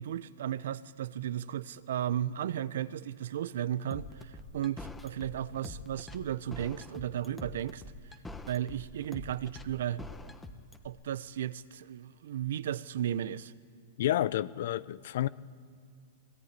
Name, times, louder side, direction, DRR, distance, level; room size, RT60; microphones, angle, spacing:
voice 1, 0.0-7.8 8.5-10.0 10.8-13.5, right 10 dB, 70° right, 0.8 m, -35 dB
sound 1, 3.9-10.9, left 2 dB, 10° left, 1.4 m, -45 dB
voice 2, 14.0-15.3, left 13 dB, 65° left, 0.6 m, -30 dB
21.5 x 18.0 x 9.7 m
hypercardioid pair, 135°, 0 cm